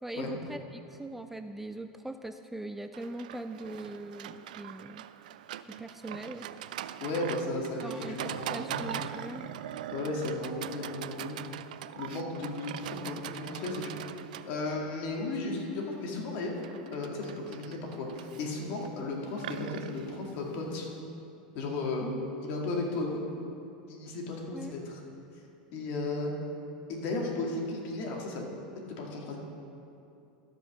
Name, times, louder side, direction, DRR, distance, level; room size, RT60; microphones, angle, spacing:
voice 1, 0.0-5.0 5.8-6.5 7.8-9.5 24.5-24.7, right 2 dB, 5° right, 8 dB, 0.3 m, -41 dB
Livestock farm animals working animals, 2.9-21.0, right 11 dB, 85° right, 0.3 m, -42 dB
voice 2, 7.0-9.2 9.9-11.5 12.0-13.9 14.4-16.5 16.9-20.9 21.5-22.1 22.4-23.2 23.9-25.0 25.7-26.3 26.9-28.5 28.9-29.4, left 2 dB, 55° left, 0 dB, 2.1 m, -35 dB
13.0 x 5.3 x 6.1 m, 2.7 s
supercardioid pair, 115°, 4 cm